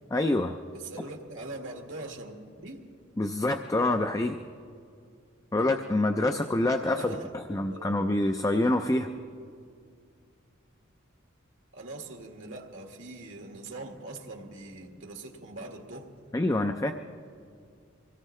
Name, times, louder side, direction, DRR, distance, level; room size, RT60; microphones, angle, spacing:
voice 1, 0.1-0.6 3.2-4.4 5.5-9.1 16.3-16.9, left 2 dB, 15° left, 6 dB, 0.4 m, -26 dB
voice 2, 0.7-2.4 2.6-2.8 6.8-7.3 7.7-8.0 11.7-16.1, right 2 dB, 75° right, 2 dB, 1.8 m, -42 dB
25.0 x 17.5 x 3.2 m, 2.3 s
head